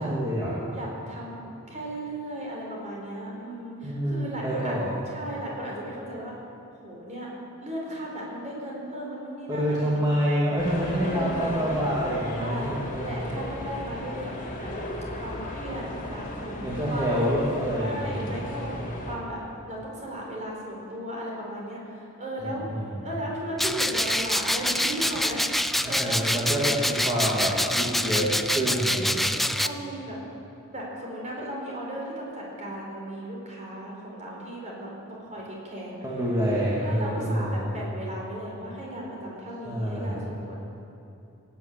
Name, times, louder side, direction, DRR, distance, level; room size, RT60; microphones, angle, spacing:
voice 1, 0.0-0.5 3.8-4.9 9.5-13.1 16.6-18.6 22.4-23.0 25.8-29.5 36.0-37.7 39.7-40.2, equal, 15° right, -8 dB, 2.5 m, -27 dB
voice 2, 0.7-1.4 1.7-4.8 5.0-6.3 6.8-7.3 7.6-10.0 10.4-11.7 12.4-12.7 13.0-14.3 14.6-14.7 15.2-17.3 17.8-19.4 19.7-26.8 27.6-28.2 28.7-28.8 29.4-30.2 30.7-36.1 36.8-40.6, right 1 dB, 35° right, -3 dB, 4.4 m, -36 dB
sound 1, 10.6-19.2, left 1 dB, 35° left, 2.7 m, -36 dB
sound 2, 23.6-29.7, equal, ahead, 0.3 m, -26 dB
18.0 x 9.3 x 8.5 m, 2.7 s
head